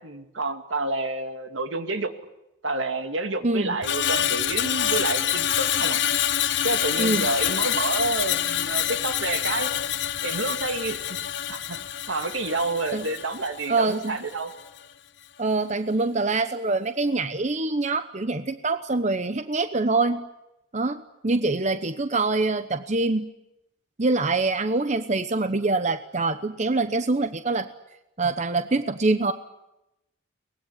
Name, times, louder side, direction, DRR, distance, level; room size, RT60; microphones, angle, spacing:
voice 1, 0.0-2.1 2.6-6.0 6.6-9.7 10.2-11.2 11.5-11.8 12.1-14.5, right 2 dB, 80° right, 7 dB, 2.4 m, -29 dB
voice 2, 3.4-3.8 7.0-7.3 12.9-13.1 13.7-14.2 15.4-20.2 20.7-23.3 24.0-27.7 28.2-29.3, right 3 dB, 40° right, 10 dB, 0.9 m, -25 dB
Screech, 3.8-14.2 14.5-14.8, left 10 dB, 65° left, 0.9 m, -26 dB
23.5 x 20.0 x 9.9 m, 0.90 s
head